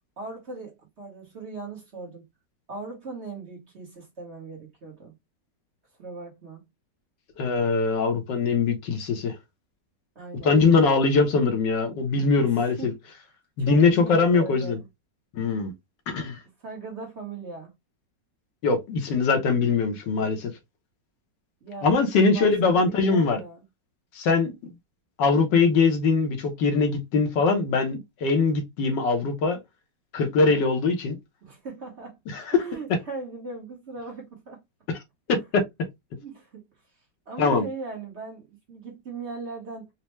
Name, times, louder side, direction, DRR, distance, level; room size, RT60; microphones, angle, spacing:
voice 1, 0.2-2.2 2.7-5.2 6.0-6.6 10.1-10.6 12.4-13.0 13.6-14.8 16.6-17.7 21.6-21.9 22.2-23.6 31.4-32.2 32.5-34.6 35.3-35.4 36.2-36.6 37.3-39.9, right 4 dB, 45° right, 1.2 m, -39 dB
voice 2, 7.4-9.4 10.4-12.9 13.6-14.8 15.3-15.7 16.1-16.4 18.6-20.5 21.8-23.4 24.1-24.5 25.2-29.6 30.1-31.2 32.3-32.4 34.9-35.0 35.3-35.6 37.4-37.6, left 4 dB, 75° left, 1.5 m, -22 dB
4.3 x 2.1 x 3.0 m
omnidirectional pair, 2.0 m